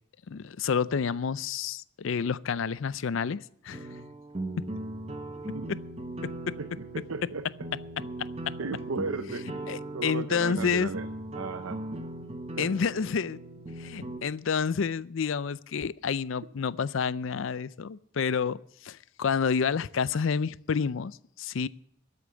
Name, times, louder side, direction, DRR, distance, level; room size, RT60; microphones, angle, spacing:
voice 1, 0.3-4.0 5.7-5.8 6.2-6.6 8.2-8.5 9.7-10.9 12.6-13.4 13.8-21.7, left 6 dB, 70° left, 19 dB, 0.4 m, -29 dB
sound 1, 3.7-14.2, right 1 dB, 30° right, 1.1 m, -39 dB
voice 2, 6.6-7.4 8.6-11.1 11.3-11.8 12.6-12.7, right 4 dB, 85° right, 11 dB, 0.7 m, -35 dB
13.0 x 8.3 x 8.2 m, 0.71 s
head